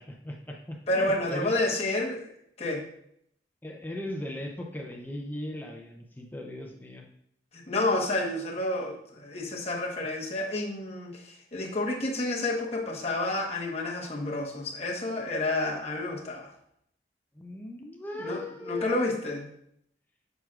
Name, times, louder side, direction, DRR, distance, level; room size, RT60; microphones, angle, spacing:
voice 1, 0.0-1.5 3.6-7.1 17.3-19.0, left 1 dB, 10° left, 1 dB, 0.6 m, -38 dB
voice 2, 0.9-2.3 2.6-2.9 7.5-16.5 18.2-19.5, left 2 dB, 35° left, -2 dB, 1.3 m, -30 dB
7.9 x 6.0 x 2.5 m, 0.70 s
head